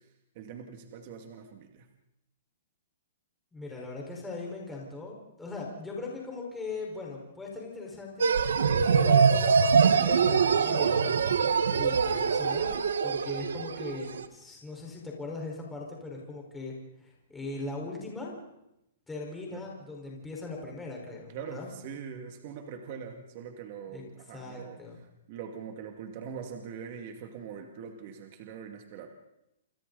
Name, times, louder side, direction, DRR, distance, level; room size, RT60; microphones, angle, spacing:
voice 1, 0.4-1.9 19.5-19.6 21.3-24.8 25.3-29.1, right 7 dB, 40° right, 4 dB, 2.4 m, -42 dB
voice 2, 3.5-8.3 8.7-11.3 11.7-18.3 19.1-21.7 23.9-24.0 24.3-25.0, left 3 dB, 5° left, -2 dB, 4.9 m, -39 dB
sound 1, 8.2-14.2, right 6 dB, 90° right, 1.6 m, -24 dB
28.5 x 27.0 x 4.1 m, 0.87 s
hypercardioid pair, 155°, 0 cm